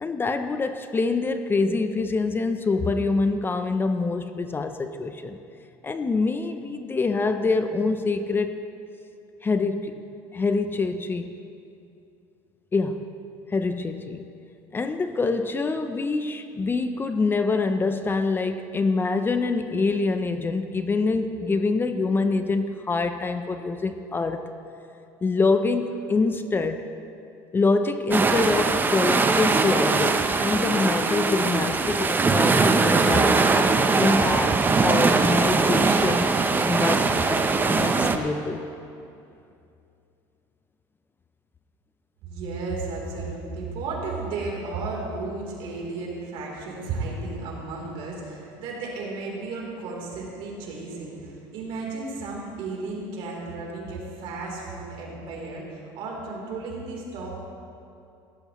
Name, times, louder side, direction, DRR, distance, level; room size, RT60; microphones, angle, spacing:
voice 1, 0.0-5.4 5.8-8.6 9.4-9.9 10.3-11.3 12.7-13.1 13.5-14.2 14.7-24.4 25.2-26.8 27.5-33.4 33.9-36.3 36.6-38.6, left 3 dB, 20° left, 8 dB, 0.6 m, -25 dB
sound 1, 28.1-38.2, right 4 dB, 20° right, 0.7 m, -21 dB
voice 2, 42.2-57.4, right 3 dB, 65° right, -2 dB, 3.5 m, -34 dB
16.5 x 13.0 x 3.1 m, 2.6 s
supercardioid pair, 110°, 10 cm